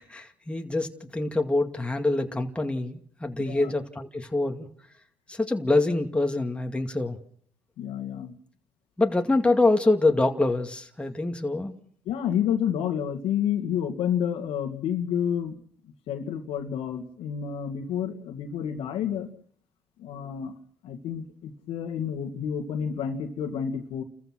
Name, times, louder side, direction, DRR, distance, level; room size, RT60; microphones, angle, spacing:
voice 1, 0.0-4.7 5.3-7.2 9.0-11.8, left 2 dB, 10° left, 4 dB, 2.3 m, -25 dB
voice 2, 3.4-3.7 7.8-8.3 12.1-15.5 16.1-19.3 20.0-20.5 20.8-24.0, left 8 dB, 80° left, 6 dB, 2.2 m, -29 dB
29.5 x 15.0 x 6.2 m, 0.62 s
cardioid pair, 85°, 9 cm